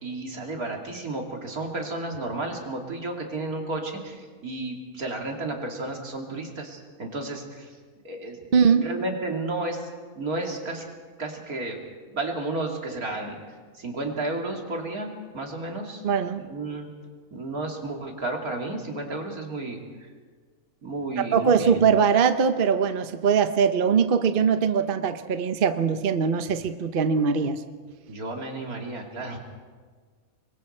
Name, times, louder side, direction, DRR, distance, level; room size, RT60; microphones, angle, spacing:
voice 1, 0.0-7.7 8.0-8.4 8.8-9.9 10.1-10.9 11.2-11.8 12.1-13.4 13.7-16.0 16.3-16.9 17.3-20.1 20.8-21.8 28.1-29.4, right 2 dB, 85° right, 1 dB, 3.2 m, -32 dB
voice 2, 8.5-8.9 16.0-16.4 21.3-27.6, right 6 dB, 45° right, 9 dB, 0.9 m, -21 dB
26.5 x 22.5 x 4.4 m, 1.5 s
omnidirectional pair, 1.5 m